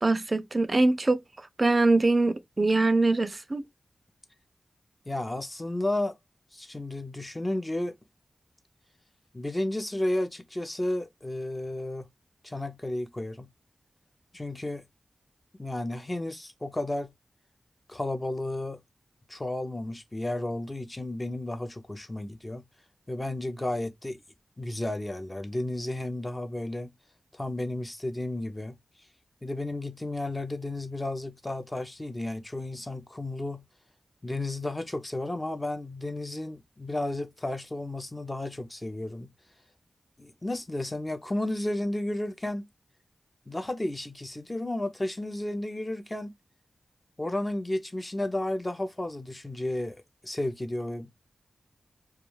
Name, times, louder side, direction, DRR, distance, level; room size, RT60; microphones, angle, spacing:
voice 1, 0.0-1.2 1.6-3.6, right 2 dB, 35° right, 0.3 m, -23 dB
voice 2, 5.1-6.2 6.5-8.0 9.3-12.1 12.4-13.5 14.3-14.8 15.6-17.1 17.9-18.8 19.3-22.6 23.1-24.2 24.6-26.9 27.3-28.8 29.4-33.6 34.2-39.3 40.2-42.7 43.5-46.3 47.2-51.1, left 1 dB, 20° left, 0.5 m, -32 dB
2.3 x 2.2 x 3.0 m
wide cardioid pair, 70°, 0 cm